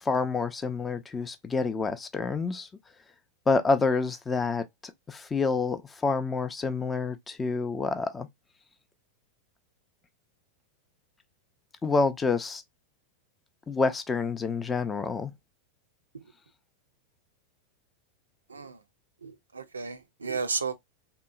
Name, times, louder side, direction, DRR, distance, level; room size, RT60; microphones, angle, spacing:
voice 1, 0.0-2.7 3.5-8.3 11.8-12.6 13.7-15.3, left 4 dB, 15° left, 0.4 m, -28 dB
voice 2, 18.5-18.8 19.2-20.7, right 5 dB, 75° right, 0.4 m, -33 dB
2.9 x 2.0 x 2.3 m
figure-of-eight pair, 90°, 0 cm